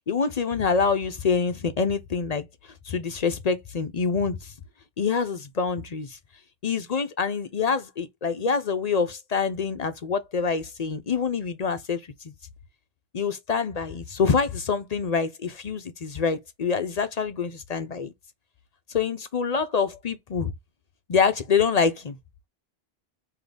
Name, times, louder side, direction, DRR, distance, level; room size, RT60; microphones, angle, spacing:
voice 1, 0.1-2.4 2.9-4.5 5.0-6.2 6.6-12.0 13.1-18.1 18.9-20.5 21.1-22.2, left 5 dB, 50° left, 0.6 m, -26 dB
3.8 x 2.8 x 3.3 m
omnidirectional pair, 1.0 m